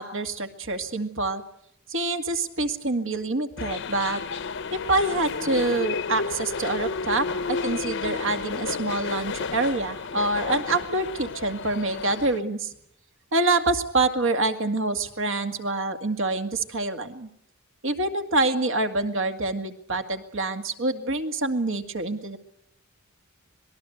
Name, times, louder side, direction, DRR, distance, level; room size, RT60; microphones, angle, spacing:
voice 1, 0.0-1.4 1.9-4.2 4.7-12.7 13.3-17.3 17.8-22.4, right 2 dB, 65° right, 7 dB, 2.1 m, -26 dB
sound 1, 3.6-12.4, left 4 dB, 60° left, 0.9 m, -32 dB
26.0 x 20.0 x 7.9 m, 0.71 s
head